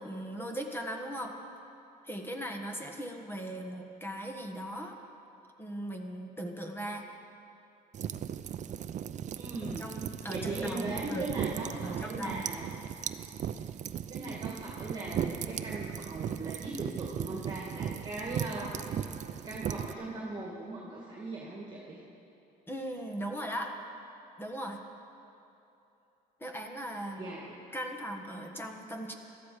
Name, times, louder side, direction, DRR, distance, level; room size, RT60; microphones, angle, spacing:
voice 1, 0.0-1.3 2.0-5.0 5.6-7.0 9.6-11.3 11.8-12.5 22.7-23.7 24.4-24.8 26.4-27.3 27.7-29.2, right 1 dB, 15° left, 3 dB, 1.5 m, -38 dB
sound 1, 7.9-19.9, right 9 dB, 45° right, 0.5 m, -37 dB
voice 2, 9.3-9.9 10.3-12.7 14.1-18.7 19.3-22.0 27.2-27.6, right 2 dB, 25° right, -3 dB, 2.2 m, -39 dB
18.0 x 13.0 x 5.1 m, 2.9 s
cardioid pair, 110°, 17 cm